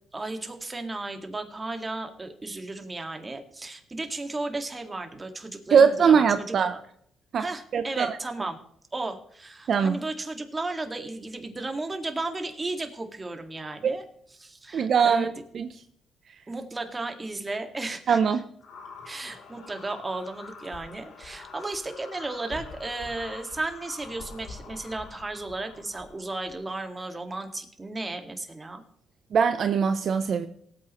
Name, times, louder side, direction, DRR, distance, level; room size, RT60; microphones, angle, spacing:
voice 1, 0.1-6.8 7.4-8.6 8.9-14.0 14.4-15.3 16.5-18.4 19.0-28.8, right 2 dB, 20° right, 6 dB, 1.9 m, -34 dB
voice 2, 5.7-6.7 7.3-7.5 7.7-8.2 9.7-10.0 13.8-14.0 14.7-15.3 15.5-15.7 18.1-18.4 29.3-30.5, right 6 dB, 55° right, 9 dB, 0.7 m, -21 dB
sound 1, 18.6-26.7, left 4 dB, 75° left, 3.1 m, -45 dB
18.5 x 8.7 x 3.1 m, 0.67 s
cardioid pair, 90°, 0 cm